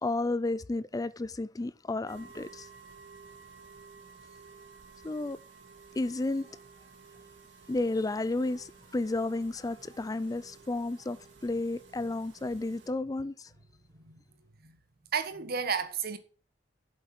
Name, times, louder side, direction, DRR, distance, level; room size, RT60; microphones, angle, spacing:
voice 1, 0.0-2.7 5.0-5.4 5.9-6.5 7.7-13.5, left 2 dB, 20° left, 0.4 m, -32 dB
sound 1, 2.1-12.9, right 4 dB, 75° right, 2.0 m, -54 dB
voice 2, 15.1-16.2, right 6 dB, 55° right, 1.4 m, -32 dB
8.0 x 8.0 x 7.7 m
head